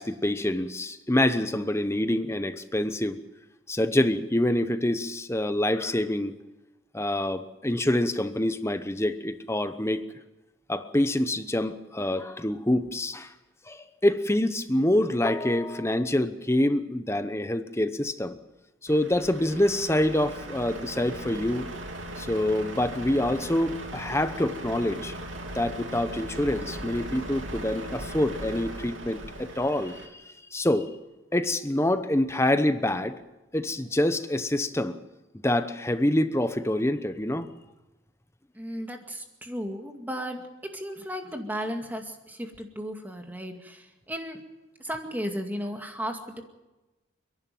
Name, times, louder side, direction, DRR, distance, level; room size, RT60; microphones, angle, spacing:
voice 1, 0.0-3.2 3.7-6.4 6.9-10.0 10.7-13.3 13.7-18.4 18.8-21.7 22.2-25.1 25.5-30.2 30.5-30.9 31.3-33.2 33.5-35.0 35.4-37.5, left 1 dB, 15° left, 11 dB, 0.9 m, -26 dB
Truck, 18.9-30.1, right 1 dB, 80° right, 3.2 m, -38 dB
voice 2, 38.5-40.4 40.7-44.4 44.8-46.4, equal, 10° right, 4 dB, 2.1 m, -35 dB
29.0 x 11.5 x 9.3 m, 1.1 s
head